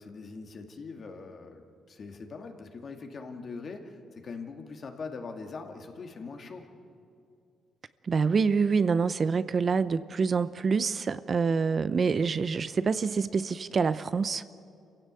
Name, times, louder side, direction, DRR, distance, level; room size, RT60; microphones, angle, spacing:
voice 1, 0.0-6.7, left 4 dB, 45° left, 4 dB, 2.4 m, -42 dB
voice 2, 8.1-14.4, right 5 dB, 40° right, 14 dB, 0.6 m, -26 dB
27.0 x 16.0 x 8.4 m, 2.5 s
cardioid pair, 90°, 0 cm